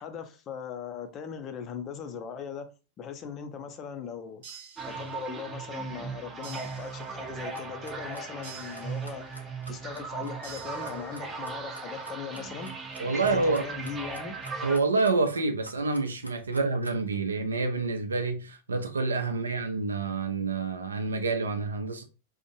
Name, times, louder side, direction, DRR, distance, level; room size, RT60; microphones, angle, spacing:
voice 1, 0.0-2.7 3.0-4.6 4.9-9.2 9.7-12.7 13.2-14.4, left 7 dB, 30° left, 0.5 m, -39 dB
sound 1, 4.4-5.5 6.4-7.5 8.4-9.5 10.4-11.5, right 7 dB, 55° right, 0.9 m, -49 dB
sound 2, 4.8-14.8, right 4 dB, 20° right, 0.5 m, -38 dB
Clock, 7.5-17.1, right 1 dB, 90° left, 0.4 m, -48 dB
voice 2, 13.0-13.6 14.6-22.0, right 3 dB, 75° right, 0.3 m, -28 dB
2.5 x 2.0 x 2.7 m
figure-of-eight pair, 90°, 0 cm